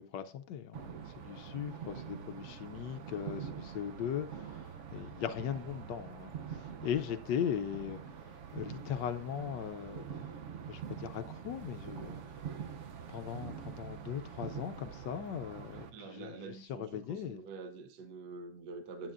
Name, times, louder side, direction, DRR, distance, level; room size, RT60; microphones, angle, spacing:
voice 1, 0.0-8.0 8.5-10.1 10.7-12.2 13.1-17.4, left 9 dB, 75° left, 1.1 m, -39 dB
sound 1, 0.7-15.9, right 8 dB, 85° right, 0.6 m, -45 dB
voice 2, 15.7-19.1, right 4 dB, 65° right, 1.2 m, -46 dB
8.9 x 8.9 x 2.5 m
omnidirectional pair, 2.2 m